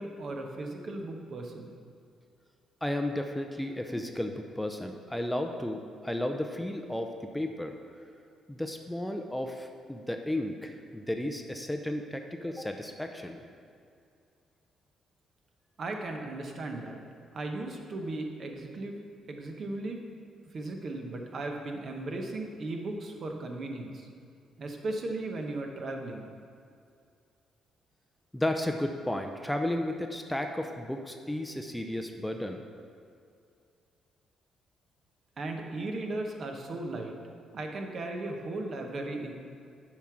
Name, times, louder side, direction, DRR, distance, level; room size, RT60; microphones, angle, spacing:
voice 1, 0.0-1.7 15.8-17.0 17.3-19.0 19.3-20.0 20.5-24.1 24.6-26.3 35.4-37.1 37.5-39.3, right 2 dB, 50° right, 3 dB, 0.9 m, -36 dB
voice 2, 2.8-7.7 8.5-13.4 28.3-32.6, left 1 dB, 5° left, 5 dB, 0.5 m, -33 dB
7.2 x 4.9 x 5.8 m, 2.4 s
cardioid pair, 90°, 0 cm